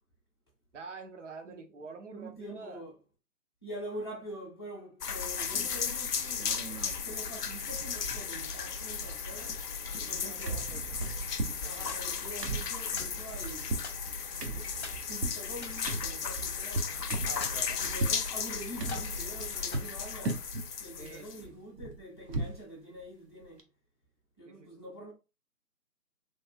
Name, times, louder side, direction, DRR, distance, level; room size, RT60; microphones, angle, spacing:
voice 1, 0.7-2.8 9.9-11.0 11.4-12.0 17.2-17.8 21.0-21.5 24.5-24.8, right 4 dB, 50° right, 0.6 m, -47 dB
voice 2, 1.4-2.9 3.6-6.5 7.0-9.6 9.9-10.6 11.6-13.8 14.3-17.0 17.8-20.5 20.8-23.7 24.4-25.1, right 1 dB, 15° left, 0.6 m, -45 dB
sound 1, 5.0-21.5, left 6 dB, 80° left, 0.6 m, -35 dB
sound 2, 5.5-5.9 6.3-7.1 7.3-7.4 7.7-8.6 8.8-10.2 10.5-18.2 18.8-19.9 20.2-20.7 21.1-22.6 23.0-23.1 23.4-23.6, right 2 dB, 85° right, 0.8 m, -38 dB
sound 3, 11.9-12.5 13.0-14.4 14.8-15.1 15.5-16.9 17.4-18.4 18.8-19.2 19.7-20.8, left 4 dB, 45° left, 0.9 m, -48 dB
3.2 x 2.4 x 2.2 m
figure-of-eight pair, 150°, 47 cm